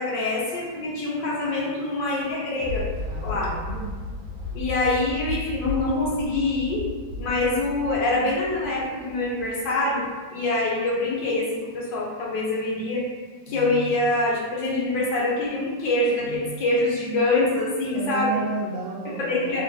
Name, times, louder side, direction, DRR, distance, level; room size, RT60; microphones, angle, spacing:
voice 1, 0.0-2.9 3.2-3.5 4.5-6.8 7.2-13.1 13.5-18.4 19.0-19.6, left 2 dB, 75° left, -4 dB, 1.4 m, -25 dB
Thunder, 2.2-9.7 10.2-10.3, left 3 dB, 60° right, 1.4 m, -34 dB
voice 2, 3.1-3.9 17.9-19.6, right 4 dB, 90° right, -2 dB, 1.4 m, -32 dB
3.6 x 2.2 x 2.6 m, 1.4 s
omnidirectional pair, 2.0 m